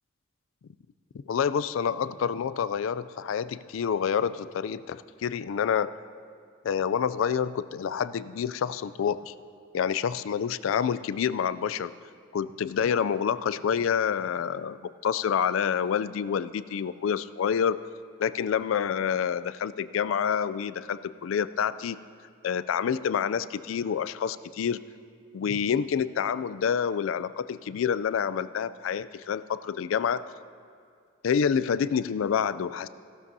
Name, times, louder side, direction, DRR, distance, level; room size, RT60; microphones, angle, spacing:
voice 1, 1.3-5.9 6.6-9.3 9.7-11.9 12.3-17.8 18.2-22.0 22.4-24.8 25.3-30.3 31.2-32.9, left 7 dB, 80° left, 15 dB, 0.3 m, -28 dB
16.5 x 12.5 x 2.7 m, 2.2 s
head